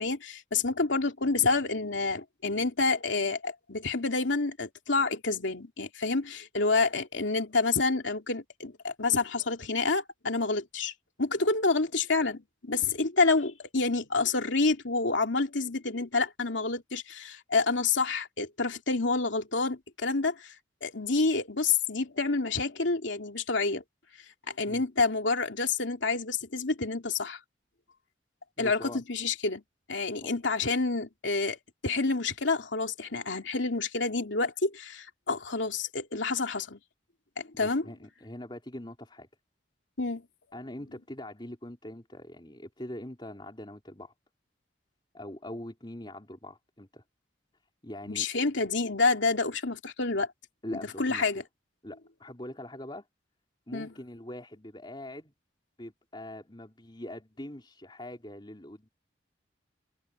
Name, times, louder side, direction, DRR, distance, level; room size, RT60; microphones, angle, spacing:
voice 1, 0.0-10.9 11.2-20.5 20.8-23.8 24.5-27.4 28.6-29.6 29.9-31.6 31.8-36.8 37.4-37.8 40.0-40.2 48.1-50.3 50.7-51.4 53.7-53.9, left 3 dB, 90° left, 2.7 m, -28 dB
voice 2, 28.6-29.0 30.2-30.3 37.6-39.3 40.5-44.1 45.1-47.0 47.8-48.3 50.6-51.2 51.8-53.1 53.7-55.3 55.8-58.9, left 1 dB, 25° left, 3.7 m, -42 dB
head